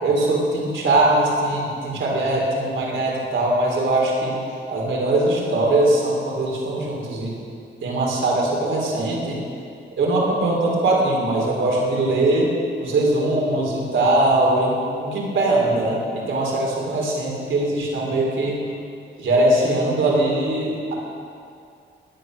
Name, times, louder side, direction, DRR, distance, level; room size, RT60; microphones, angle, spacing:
voice 1, 0.0-4.3 4.7-7.3 7.8-9.4 10.0-12.5 12.8-18.6 19.2-21.0, right 2 dB, 80° right, -2 dB, 3.4 m, -21 dB
16.5 x 11.0 x 6.3 m, 2.4 s
wide cardioid pair, 160°, 20 cm